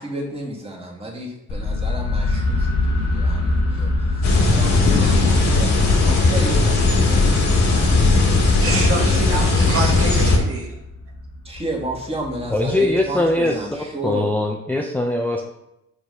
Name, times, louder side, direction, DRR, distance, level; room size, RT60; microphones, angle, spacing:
voice 1, 0.0-7.3 8.2-9.5 10.2-10.3 11.4-14.3, right 1 dB, 20° right, -2 dB, 2.0 m, -32 dB
sound 1, 1.5-13.3, left 2 dB, 85° left, 1.7 m, -26 dB
sound 2, 4.2-10.4, left 3 dB, 65° left, 1.8 m, -17 dB
sound 3, 4.8-7.1 7.4-8.4 9.2-9.6 10.6-10.8, left 6 dB, 45° left, 0.8 m, -31 dB
voice 2, 8.6-10.7, right 2 dB, 45° right, 0 dB, 1.5 m, -26 dB
voice 3, 12.5-13.6 14.0-15.4, left 1 dB, 5° left, 0 dB, 0.6 m, -21 dB
5.9 x 4.0 x 5.1 m, 0.85 s
cardioid pair, 90°, 30 cm